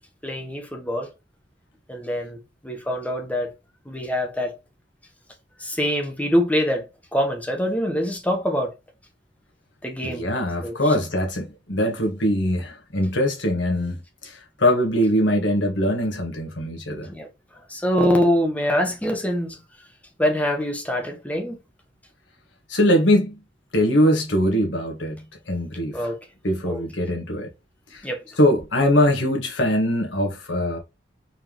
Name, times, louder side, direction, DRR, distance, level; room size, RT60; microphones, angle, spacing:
voice 1, 0.2-1.1 1.9-3.5 3.9-4.5 5.6-8.7 9.8-10.9 17.1-17.3 17.7-19.6 20.2-21.6 25.9-26.2 26.6-26.8 28.0-28.2, equal, 10° left, 1.1 m, -24 dB
voice 2, 10.0-14.3 14.6-17.1 22.7-23.3 23.7-26.0 26.4-27.5 27.9-28.0 28.4-30.8, equal, 70° left, 1.6 m, -22 dB
4.6 x 3.6 x 3.0 m
head